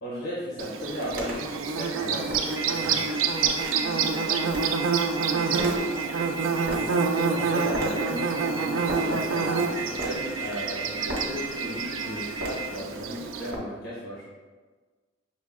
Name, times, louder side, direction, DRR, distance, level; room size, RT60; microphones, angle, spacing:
voice 1, 0.0-3.0 6.7-14.3, equal, 90° left, -7 dB, 1.0 m, -35 dB
Bird / Buzz, 0.6-13.5, right 5 dB, 85° right, 0.4 m, -28 dB
sound 1, 0.8-13.6, right 1 dB, 50° right, 1.0 m, -40 dB
sound 2, 2.5-12.7, right 5 dB, 15° right, 0.4 m, -34 dB
voice 2, 3.8-4.5 5.1-5.8 8.9-9.7, left 1 dB, 50° left, 0 dB, 0.7 m, -38 dB
6.2 x 2.1 x 3.6 m, 1.4 s
head